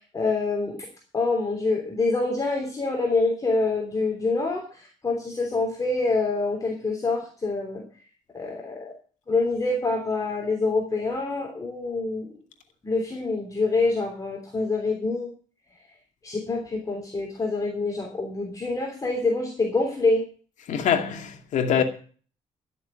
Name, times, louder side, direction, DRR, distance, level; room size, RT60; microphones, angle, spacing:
voice 1, 0.1-0.9 1.1-7.8 8.3-8.9 9.3-12.3 12.8-15.3 16.2-20.2, left 3 dB, 25° left, 3.2 m, -26 dB
voice 2, 20.7-21.8, left 8 dB, 70° left, 2.3 m, -24 dB
12.5 x 7.0 x 8.4 m
cardioid pair, 110°, 13 cm